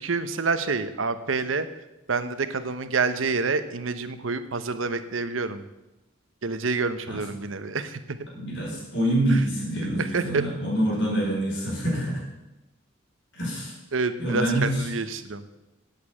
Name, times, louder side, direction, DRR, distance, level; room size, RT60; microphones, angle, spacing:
voice 1, 0.0-1.7 2.1-5.7 6.4-8.2 9.3-9.4 10.0-10.4 13.9-15.4, right 4 dB, 90° right, 11 dB, 0.9 m, -27 dB
voice 2, 8.3-12.2 13.3-13.8 14.2-14.8, right 1 dB, 65° left, -4 dB, 5.4 m, -26 dB
8.5 x 8.1 x 8.5 m, 0.96 s
head